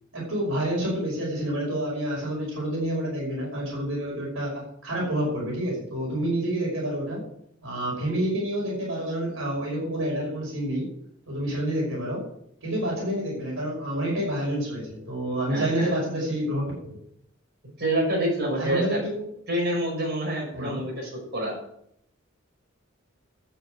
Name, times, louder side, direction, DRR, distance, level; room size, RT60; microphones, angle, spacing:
voice 1, 0.1-7.2 7.6-10.9 11.3-12.3 12.6-16.7 18.6-19.2 20.5-20.8, right 1 dB, 80° right, -3 dB, 5.5 m, -28 dB
voice 2, 15.5-15.9 17.8-19.0 19.5-21.6, right 1 dB, 55° right, -2 dB, 6.1 m, -27 dB
11.5 x 8.3 x 7.9 m, 0.72 s
head